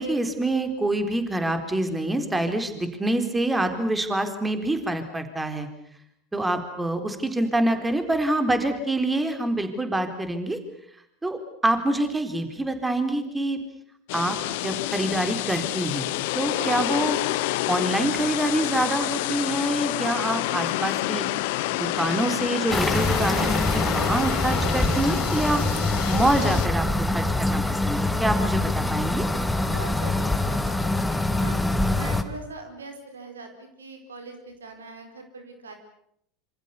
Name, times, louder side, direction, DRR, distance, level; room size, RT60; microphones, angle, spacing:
voice 1, 0.0-5.7 6.3-10.6 11.2-13.6 14.1-16.1 16.3-17.2 17.7-21.3 21.7-25.8 26.1-29.3, right 1 dB, 10° right, 8 dB, 4.0 m, -26 dB
sound 1, 14.1-26.7, left 18 dB, 60° left, 1.0 m, -28 dB
voice 2, 16.5-16.8 29.6-31.6 31.9-35.7, right 3 dB, 80° right, 7 dB, 4.5 m, -41 dB
toilet flush (complete), 22.7-32.2, left 2 dB, 5° left, 2.4 m, -24 dB
27.0 x 26.5 x 6.9 m, 0.71 s
figure-of-eight pair, 75°, 0 cm